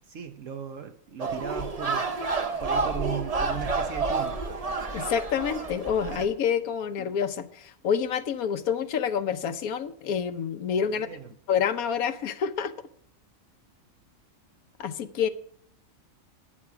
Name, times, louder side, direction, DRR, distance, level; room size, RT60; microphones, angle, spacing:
voice 1, 0.1-2.0 2.6-4.4 10.8-11.3, right 8 dB, 65° right, 1.1 m, -37 dB
sound 1, 1.2-6.3, right 4 dB, 30° right, 0.8 m, -29 dB
voice 2, 4.9-11.1 11.5-12.7 14.8-15.3, left 7 dB, 85° left, 1.3 m, -28 dB
12.0 x 9.5 x 4.8 m
omnidirectional pair, 1.5 m